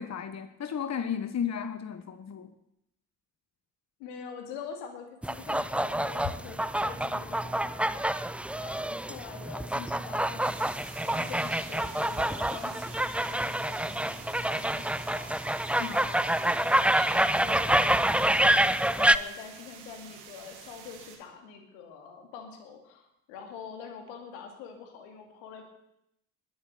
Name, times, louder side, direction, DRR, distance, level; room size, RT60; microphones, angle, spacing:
voice 1, 0.0-2.5 15.8-16.1, left 7 dB, 35° left, 10 dB, 1.2 m, -34 dB
voice 2, 4.0-15.5 15.9-25.6, left 6 dB, 75° left, 5 dB, 2.5 m, -45 dB
sound 1, 5.2-19.2, right 1 dB, 5° right, 0.5 m, -27 dB
sound 2, 10.4-21.2, right 7 dB, 75° right, 2.3 m, -49 dB
20.5 x 7.9 x 6.6 m, 0.79 s
figure-of-eight pair, 45°, 46 cm